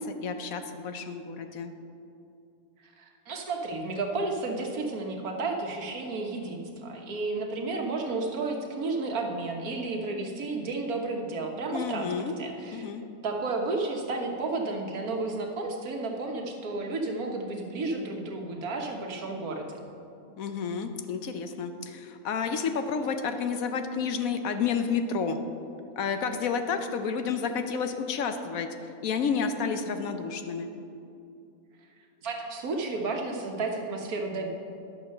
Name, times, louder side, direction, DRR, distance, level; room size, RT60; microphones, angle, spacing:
voice 1, 0.0-1.7 11.7-12.3 12.7-13.0 20.4-25.4 26.0-28.7 29.0-30.7, left 6 dB, 70° left, 7 dB, 1.1 m, -30 dB
voice 2, 2.8-12.1 12.4-12.9 13.2-19.8 32.2-34.5, right 3 dB, 75° right, 2 dB, 1.6 m, -32 dB
11.0 x 6.3 x 6.4 m, 2.6 s
omnidirectional pair, 1.6 m